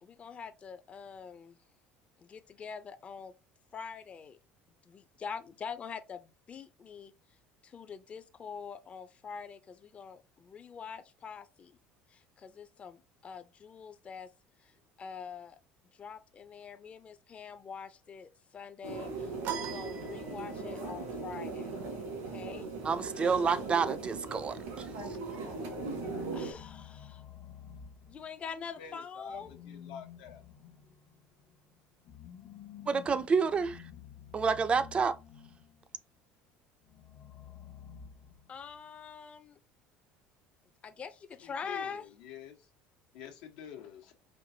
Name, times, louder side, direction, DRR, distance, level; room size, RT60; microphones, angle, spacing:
voice 1, 0.0-1.6 2.2-3.3 3.7-4.4 4.8-7.1 7.6-11.8 12.1-14.3 14.6-15.6 15.9-21.7 22.3-22.7 26.3-27.3 28.1-29.6 38.5-39.6 40.8-42.1, left 6 dB, 30° left, 0.5 m, -45 dB
sound 1, 18.8-26.5, right 3 dB, 90° right, 2.1 m, -39 dB
sound 2, 19.4-20.8, right 9 dB, 65° right, 0.7 m, -40 dB
voice 2, 22.8-24.9 32.9-33.8 34.3-35.2, right 5 dB, 30° right, 0.4 m, -29 dB
sound 3, 25.3-28.6 29.3-35.9 36.8-38.8, left 9 dB, 55° left, 0.8 m, -51 dB
voice 3, 28.8-29.4 29.7-30.4 41.4-42.5 43.1-44.1, left 9 dB, 90° left, 1.1 m, -47 dB
4.4 x 2.5 x 2.7 m
supercardioid pair, 110°, 4 cm